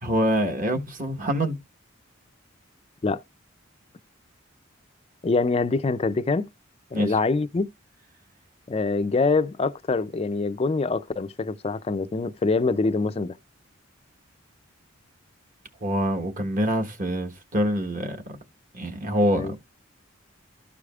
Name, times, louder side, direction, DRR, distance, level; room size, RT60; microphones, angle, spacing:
voice 1, 0.0-1.6 6.9-7.1 15.8-18.2 18.7-19.6, equal, 40° right, 1.1 m, -25 dB
voice 2, 5.2-6.5 6.9-7.7 8.7-13.4 19.4-19.5, left 3 dB, 30° left, 0.3 m, -24 dB
13.0 x 4.8 x 2.3 m
head